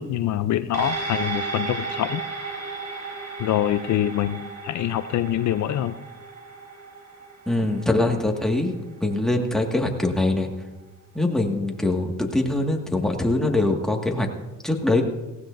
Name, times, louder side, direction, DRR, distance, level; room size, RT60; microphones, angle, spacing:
voice 1, 0.0-2.2 3.4-6.0, left 12 dB, 70° left, 12 dB, 0.6 m, -25 dB
sound 1, 0.7-9.4 9.8-9.9, right 4 dB, 65° right, 4.3 m, -34 dB
voice 2, 7.5-8.8 9.0-10.5 11.1-14.3 14.6-15.0, left 2 dB, ahead, 1 dB, 1.9 m, -23 dB
18.0 x 16.0 x 2.6 m, 1.1 s
cardioid pair, 90°, 30 cm